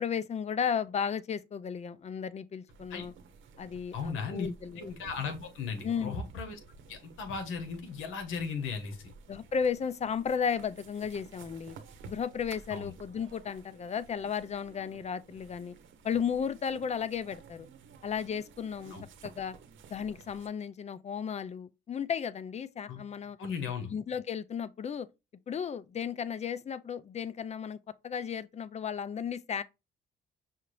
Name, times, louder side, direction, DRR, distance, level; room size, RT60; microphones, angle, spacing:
voice 1, 0.0-3.1 3.6-4.9 5.8-6.2 9.3-11.8 12.0-15.7 16.0-17.7 18.0-19.0 19.2-19.6 19.9-23.4 23.9-25.1 25.5-27.8 28.0-29.6, left 7 dB, 35° left, 0.4 m, -34 dB
sound 1, 2.7-20.5, right 5 dB, 75° right, 0.8 m, -53 dB
voice 2, 3.9-4.5 4.8-6.6 6.9-9.1 12.7-12.9 18.9-19.0 22.9-23.0 23.4-23.9, left 5 dB, 85° left, 1.1 m, -36 dB
5.7 x 2.5 x 3.1 m
cardioid pair, 90°, 20 cm